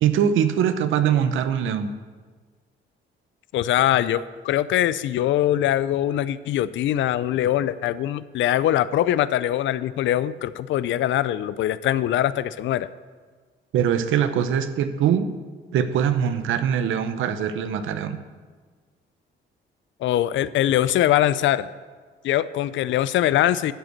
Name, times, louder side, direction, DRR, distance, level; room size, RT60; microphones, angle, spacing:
voice 1, 0.0-1.9 13.7-15.3 15.7-18.2, right 8 dB, 80° right, 11 dB, 0.8 m, -22 dB
voice 2, 3.5-12.9 20.0-21.7 22.2-23.7, left 12 dB, 75° left, 16 dB, 0.5 m, -22 dB
11.5 x 5.1 x 8.0 m, 1.5 s
cardioid pair, 90°, 20 cm